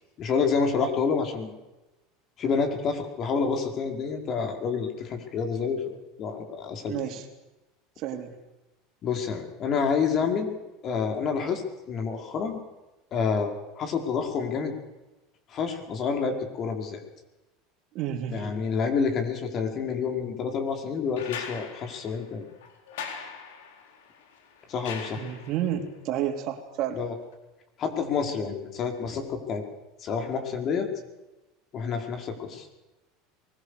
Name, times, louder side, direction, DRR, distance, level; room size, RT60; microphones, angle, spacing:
voice 1, 0.2-1.5 2.4-7.0 9.0-10.5 10.8-11.6 11.9-12.6 13.1-14.7 15.5-17.0 18.3-22.5 24.7-25.2 26.9-27.1 27.8-29.6 30.0-30.9 31.7-32.7, left 5 dB, 45° left, 4 dB, 5.2 m, -28 dB
voice 2, 6.9-7.3 8.0-8.4 17.9-18.6 25.2-27.0, right 10 dB, 55° right, 5 dB, 3.4 m, -31 dB
sound 1, 21.2-25.8 27.3-27.4, left 6 dB, 85° left, 4.0 m, -41 dB
23.5 x 21.0 x 6.8 m, 1.0 s
supercardioid pair, 110°, 0 cm